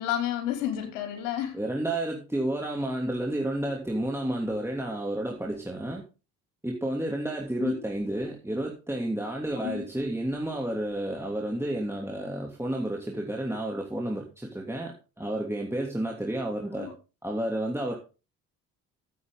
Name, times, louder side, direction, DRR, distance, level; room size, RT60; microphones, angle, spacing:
voice 1, 0.0-1.6 7.6-7.8 9.6-9.9 16.7-16.9, left 11 dB, 85° left, 3.1 m, -31 dB
voice 2, 1.5-6.0 6.6-16.9 17.2-17.9, right 1 dB, 5° right, 2.9 m, -31 dB
13.5 x 8.8 x 3.8 m
hypercardioid pair, 55°, 37 cm